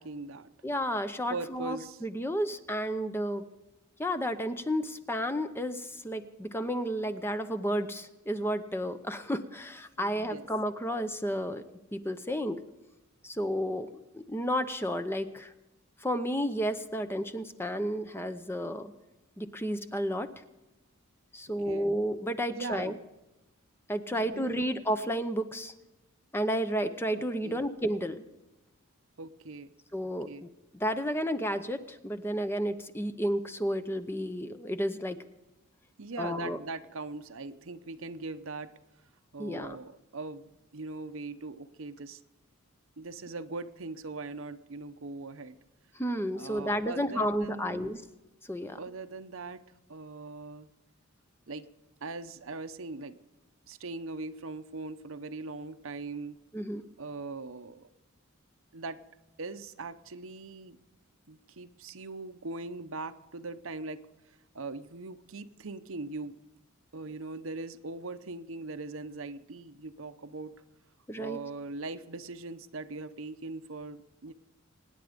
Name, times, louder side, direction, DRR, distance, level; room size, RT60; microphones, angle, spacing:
voice 1, 0.0-0.5 1.3-2.0 10.0-10.5 21.6-21.9 22.5-23.1 24.1-24.7 27.4-27.7 29.2-29.7 30.3-30.5 36.0-38.7 39.3-42.2 43.0-45.6 46.3-48.0 48.7-49.6 49.9-50.7 51.5-51.7 52.0-53.1 53.7-56.4 57.0-57.9 58.7-59.0 59.4-60.8 61.3-64.0 64.5-66.4 66.9-70.5 71.2-74.3, right 3 dB, 65° right, 11 dB, 0.8 m, -40 dB
voice 2, 0.6-3.4 4.0-11.6 11.9-12.6 13.2-13.9 14.1-15.5 16.0-18.9 19.4-20.3 21.3-22.9 23.9-25.7 26.3-28.2 29.9-30.5 30.8-35.2 36.2-36.6 39.4-39.8 46.0-48.0 48.5-48.8 56.5-56.8 71.1-71.4, equal, 10° left, 10 dB, 0.7 m, -32 dB
25.0 x 10.0 x 5.2 m, 0.99 s
head